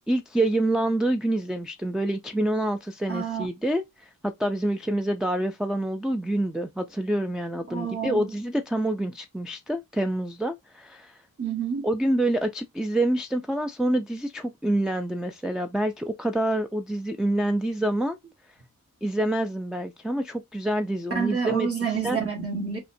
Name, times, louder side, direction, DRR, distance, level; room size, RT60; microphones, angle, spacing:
voice 1, 0.1-11.2 11.8-18.2 19.0-22.2, right 1 dB, ahead, 0.3 m, -27 dB
voice 2, 3.1-3.5 7.7-8.3 11.4-11.9 21.1-22.8, right 6 dB, 40° right, 1.5 m, -28 dB
5.4 x 2.1 x 2.6 m
wide cardioid pair, 75°, 36 cm